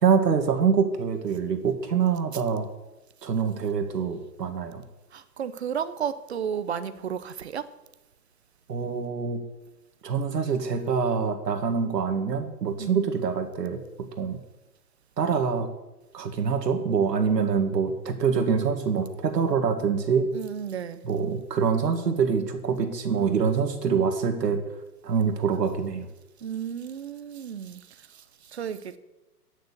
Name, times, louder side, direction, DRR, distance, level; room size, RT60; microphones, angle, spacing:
voice 1, 0.0-2.7 3.2-4.8 8.7-9.4 10.0-13.8 14.2-14.4 15.2-15.7 16.1-20.3 21.1-24.6 25.0-26.1, right 6 dB, 85° right, 2.0 m, -25 dB
voice 2, 5.1-7.7 12.8-13.0 20.3-21.0 26.4-29.0, right 8 dB, 45° right, 0.6 m, -33 dB
9.4 x 6.6 x 8.1 m
hypercardioid pair, 170°, 48 cm